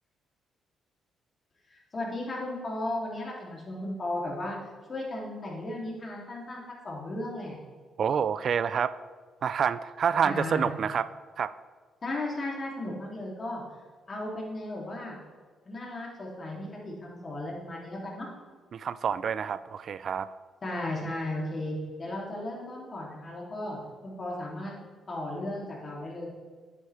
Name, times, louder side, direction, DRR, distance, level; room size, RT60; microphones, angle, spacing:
voice 1, 1.7-4.6 4.9-7.6 10.2-10.7 12.0-13.6 14.1-15.2 15.6-18.3 20.6-24.7 25.1-26.3, left 1 dB, 35° left, -3 dB, 2.8 m, -35 dB
voice 2, 8.0-8.9 9.4-11.1 11.4-11.5 18.7-20.3, right 7 dB, 55° right, 16 dB, 0.4 m, -28 dB
9.8 x 8.4 x 3.4 m, 1.5 s
cardioid pair, 90°, 0 cm